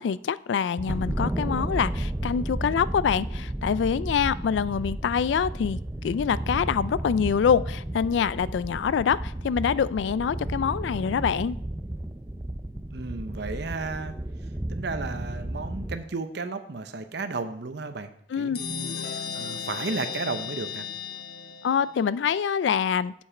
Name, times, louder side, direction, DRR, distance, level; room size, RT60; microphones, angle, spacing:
voice 1, 0.0-11.6 18.3-18.6 21.6-23.1, left 7 dB, 75° left, 18 dB, 0.3 m, -25 dB
sound 1, 0.8-16.0, right 1 dB, 15° right, 0.4 m, -33 dB
voice 2, 12.9-14.1 14.7-20.9, right 3 dB, 65° right, 9 dB, 0.8 m, -34 dB
sound 2, 18.5-22.1, left 6 dB, 60° left, 0.7 m, -35 dB
7.3 x 7.1 x 4.4 m, 0.68 s
head